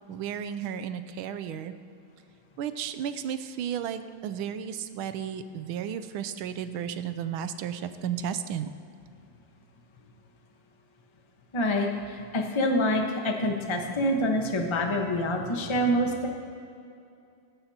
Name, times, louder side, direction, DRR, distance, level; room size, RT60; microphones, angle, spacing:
voice 1, 0.1-1.7 2.6-8.7, right 8 dB, 75° right, 11 dB, 1.4 m, -33 dB
voice 2, 11.5-16.3, left 1 dB, 25° left, 2 dB, 0.7 m, -26 dB
17.5 x 14.5 x 2.9 m, 2.5 s
omnidirectional pair, 2.4 m